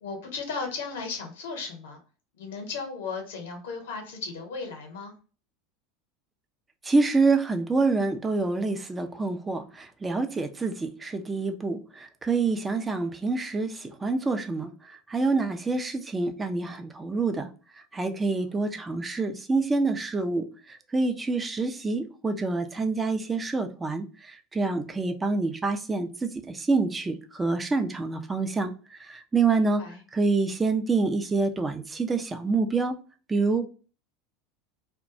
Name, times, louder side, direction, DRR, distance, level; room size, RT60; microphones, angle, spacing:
voice 1, 0.0-2.0 2.4-5.1 18.7-18.8 29.6-30.0, left 4 dB, 70° left, 3 dB, 0.9 m, -36 dB
voice 2, 6.9-11.8 12.2-14.7 15.1-17.5 17.9-20.5 20.9-24.1 24.5-28.7 29.1-29.8 30.1-33.0 33.3-33.6, right 3 dB, 20° right, 7 dB, 0.5 m, -26 dB
2.3 x 2.2 x 2.7 m, 0.36 s
hypercardioid pair, 85°, 0 cm